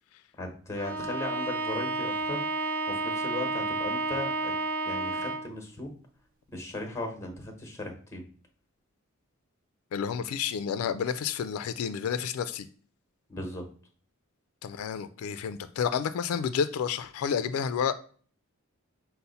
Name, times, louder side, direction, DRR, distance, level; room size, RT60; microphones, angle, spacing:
voice 1, 0.4-2.5 2.9-4.5 4.8-5.9 6.5-8.2 13.3-13.7, left 2 dB, 15° left, 3 dB, 1.0 m, -37 dB
Bowed string instrument, 0.8-5.6, right 3 dB, 70° right, 0.5 m, -31 dB
voice 2, 9.9-12.7 14.6-17.9, left 7 dB, 90° left, 12 dB, 0.3 m, -30 dB
5.5 x 2.0 x 3.9 m, 0.44 s
head